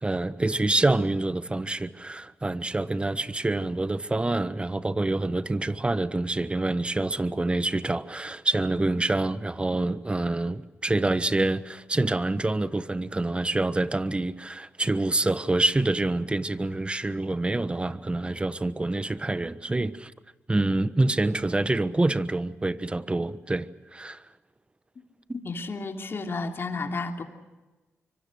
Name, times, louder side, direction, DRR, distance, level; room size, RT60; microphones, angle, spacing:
voice 1, 0.0-20.1 20.5-24.2, right 2 dB, 20° right, 1.2 m, -26 dB
voice 2, 25.4-27.2, left 3 dB, 50° left, 3.2 m, -32 dB
25.5 x 24.5 x 6.4 m
cardioid pair, 60°, 5 cm